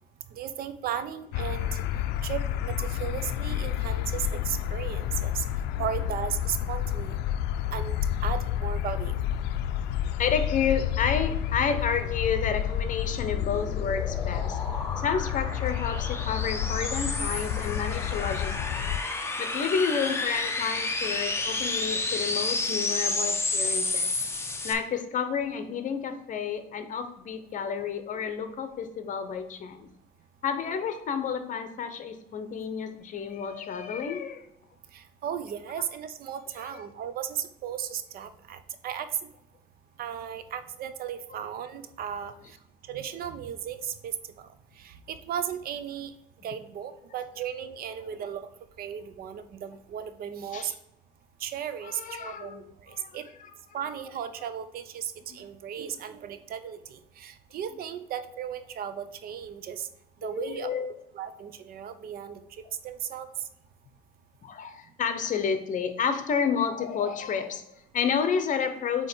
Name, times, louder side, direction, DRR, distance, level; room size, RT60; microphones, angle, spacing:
voice 1, 0.3-1.8 2.2-5.4 5.8-7.2 7.7-9.2 34.9-39.1 40.0-42.6 42.8-44.5 44.8-46.1 46.4-48.5 48.8-50.7 51.4-53.2 53.7-59.9 60.2-60.7 61.1-62.4 62.8-63.3, right 9 dB, 60° right, 11 dB, 0.6 m, -36 dB
sound 1, 1.3-19.0, left 11 dB, 85° left, 0.4 m, -30 dB
voice 2, 10.2-14.6 15.0-18.8 19.4-24.1 24.6-29.9 30.4-34.5 50.5-50.7 51.8-52.6 52.9-53.5 60.3-61.0 64.4-69.1, left 6 dB, 50° left, 9 dB, 0.8 m, -30 dB
sound 2, 13.0-24.7, left 3 dB, 15° left, 0.8 m, -31 dB
7.6 x 3.0 x 4.5 m, 0.79 s
cardioid pair, 110°, 17 cm